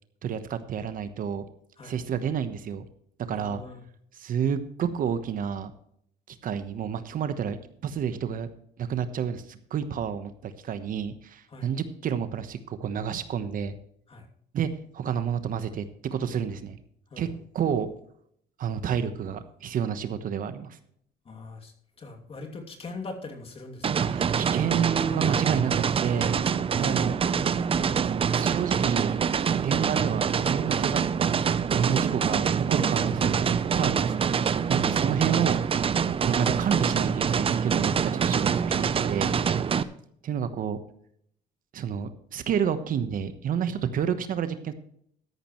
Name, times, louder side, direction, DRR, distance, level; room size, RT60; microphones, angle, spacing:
voice 1, 0.2-1.4 1.8-2.8 3.3-3.6 4.1-5.7 6.3-7.6 7.8-8.5 8.8-13.7 14.5-14.7 14.9-16.8 17.2-17.3 17.5-17.9 18.6-20.8 24.1-26.4 26.8-27.2 28.3-29.2 29.6-34.2 34.7-35.6 36.2-39.3 40.2-40.8 41.7-44.7, right 8 dB, 55° right, 11 dB, 1.1 m, -30 dB
voice 2, 3.3-3.8 11.5-11.7 14.1-14.3 17.1-17.4 21.2-24.1 26.8-26.9 34.8-35.0 39.7-39.9, left 3 dB, 35° left, 3 dB, 2.7 m, -42 dB
sound 1, 23.8-39.8, right 7 dB, 35° right, 0.6 m, -25 dB
13.5 x 11.0 x 3.1 m, 0.68 s
cardioid pair, 110°, 17 cm